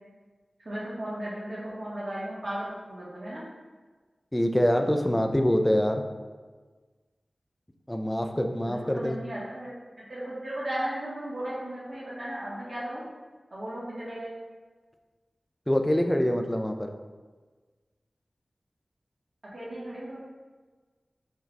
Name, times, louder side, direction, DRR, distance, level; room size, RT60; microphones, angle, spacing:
voice 1, 0.6-3.4 8.6-9.7 10.0-13.0 13.5-14.3 19.5-20.2, right 1 dB, 55° right, -7 dB, 1.2 m, -35 dB
voice 2, 4.3-6.0 7.9-9.2 15.7-16.9, equal, 15° left, 5 dB, 0.4 m, -25 dB
4.7 x 2.3 x 4.4 m, 1.4 s
wide cardioid pair, 55°, 0 cm